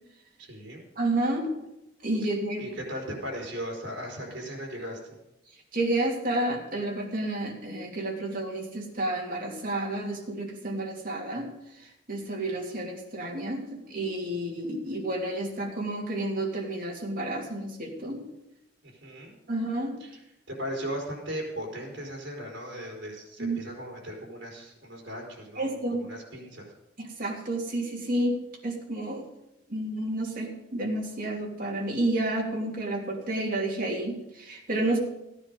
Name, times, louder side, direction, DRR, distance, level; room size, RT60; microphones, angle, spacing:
voice 1, 0.4-0.8 2.6-5.2 18.8-19.3 20.0-20.1 20.5-26.7, equal, 65° right, -1 dB, 4.3 m, -37 dB
voice 2, 1.0-1.5 2.0-2.7 5.7-11.5 11.8-18.2 19.5-20.0 23.4-23.6 25.6-26.1 27.0-29.3 29.7-35.0, right 1 dB, 50° right, -1 dB, 2.9 m, -30 dB
15.0 x 9.9 x 5.4 m, 0.89 s
head